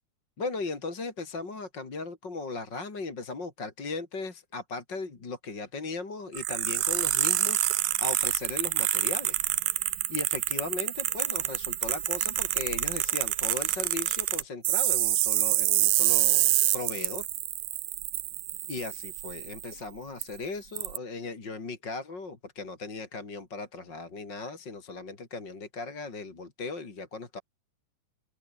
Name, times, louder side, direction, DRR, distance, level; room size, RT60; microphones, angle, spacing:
voice 1, 0.4-9.4 10.1-17.3 18.7-27.4, left 3 dB, 30° left, 3.8 m, -37 dB
sound 1, 6.3-19.7 20.2-20.3 20.8-21.0, right 16 dB, 75° right, 2.2 m, -27 dB
open air
omnidirectional pair, 4.7 m